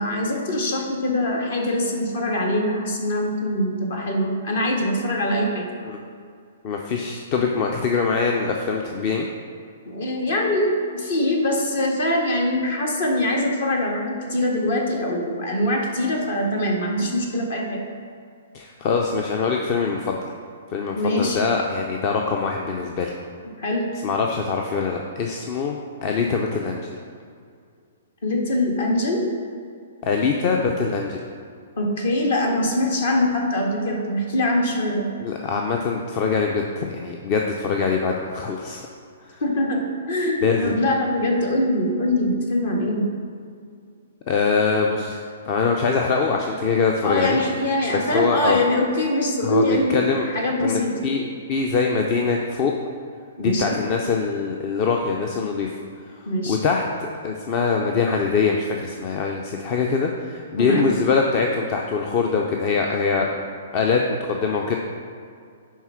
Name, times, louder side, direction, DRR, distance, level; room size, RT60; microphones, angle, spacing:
voice 1, 0.0-5.6 9.9-17.8 20.9-21.4 23.6-23.9 28.2-29.2 31.8-35.1 39.4-43.1 47.0-50.0 50.3-50.9 53.4-53.8 56.2-56.6 60.6-60.9, left 1 dB, 60° left, 0 dB, 1.7 m, -23 dB
voice 2, 6.6-9.3 18.5-20.2 20.7-23.1 24.0-26.9 30.0-31.2 35.2-38.9 39.2-39.4 40.4-40.7 44.3-47.4 47.9-48.6 49.4-50.3 50.6-52.7 53.4-55.8 56.1-56.2 56.5-63.4 63.7-64.7, left 5 dB, 35° left, 1 dB, 0.6 m, -23 dB
10.5 x 3.8 x 5.8 m, 2.3 s
figure-of-eight pair, 115°, 0 cm